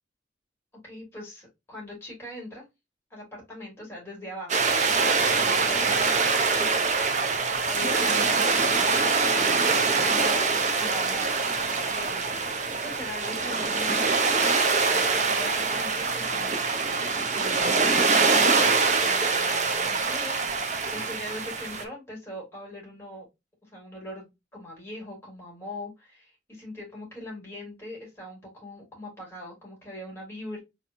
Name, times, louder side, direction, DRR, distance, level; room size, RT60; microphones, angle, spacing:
voice 1, 0.8-2.7 3.1-4.6 5.0-7.4 7.7-9.1 9.6-11.3 11.6-12.5 12.8-14.2 14.9-16.8 17.2-23.3 23.6-30.6, left 1 dB, 15° left, -3 dB, 3.0 m, -41 dB
sound 1, 4.5-21.8, right 4 dB, 40° right, 0.8 m, -24 dB
4.5 x 3.9 x 2.6 m, 0.22 s
head